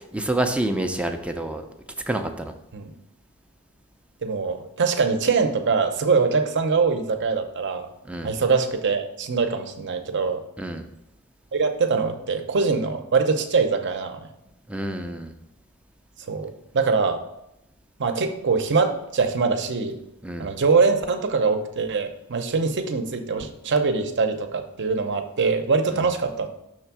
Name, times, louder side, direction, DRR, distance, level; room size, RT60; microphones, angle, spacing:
voice 1, 0.0-1.6 2.1-2.5 8.1-8.3 10.6-10.9 14.7-15.3 20.2-20.5 25.9-26.0, right 1 dB, 5° right, 5 dB, 0.5 m, -28 dB
voice 2, 4.2-7.9 8.2-10.4 11.5-14.3 16.3-17.2 18.0-20.0 20.4-26.5, right 4 dB, 55° right, 7 dB, 0.7 m, -23 dB
6.4 x 3.5 x 5.9 m, 0.88 s
head